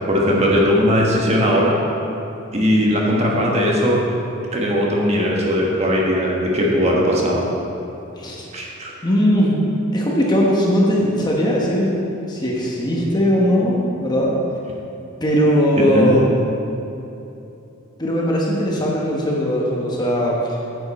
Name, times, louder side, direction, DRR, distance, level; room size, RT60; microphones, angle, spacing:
voice 1, 0.1-1.8 2.5-4.0 4.5-7.4 8.5-8.9 15.7-16.1, equal, 30° right, -3 dB, 1.3 m, -18 dB
voice 2, 9.0-9.6 9.9-12.0 12.3-14.4 15.2-16.2 18.0-20.6, equal, 20° left, -3 dB, 1.1 m, -19 dB
9.4 x 7.8 x 4.2 m, 2.8 s
head